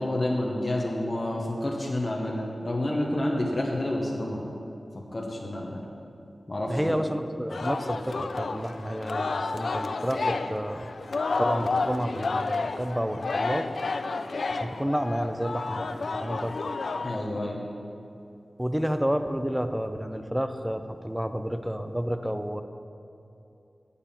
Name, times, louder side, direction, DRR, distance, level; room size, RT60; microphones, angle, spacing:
voice 1, 0.0-4.5 5.1-5.8 6.5-7.0 17.0-17.6, left 1 dB, 35° left, -2 dB, 1.0 m, -29 dB
voice 2, 6.7-10.9 11.4-13.7 14.5-17.1 18.6-22.6, equal, 5° right, 8 dB, 0.4 m, -30 dB
Singing, 7.5-17.2, left 3 dB, 75° left, 0.4 m, -31 dB
8.9 x 6.9 x 5.6 m, 2.6 s
wide cardioid pair, 100°, 0 cm